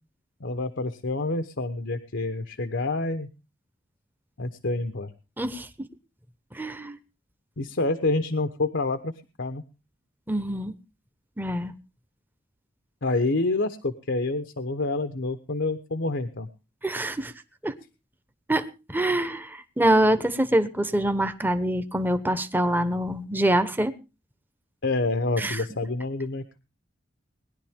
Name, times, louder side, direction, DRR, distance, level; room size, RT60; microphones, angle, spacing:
voice 1, 0.4-3.3 4.4-5.1 7.6-9.1 9.4-9.6 13.0-16.5 24.8-26.6, left 2 dB, 70° left, 1.0 m, -27 dB
voice 2, 5.4-5.7 6.5-7.0 10.3-10.7 11.4-11.7 16.8-17.3 17.6-17.7 18.5-23.9 25.4-25.6, right 1 dB, 10° right, 1.0 m, -25 dB
20.0 x 11.0 x 3.6 m
head